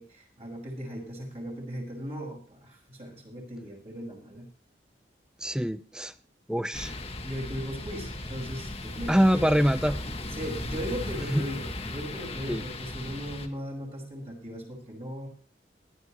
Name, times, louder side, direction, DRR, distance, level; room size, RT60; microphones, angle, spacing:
voice 1, 0.0-4.5 6.7-6.8 7.2-9.5 10.3-15.3, equal, 35° right, -1 dB, 5.5 m, -38 dB
voice 2, 5.4-6.1 6.5-6.9 9.1-10.0 11.3-11.5 12.5-12.6, equal, 5° right, 12 dB, 0.7 m, -24 dB
sound 1, 6.7-13.5, left 2 dB, 35° left, 1.6 m, -37 dB
19.0 x 12.5 x 3.1 m, 0.41 s
head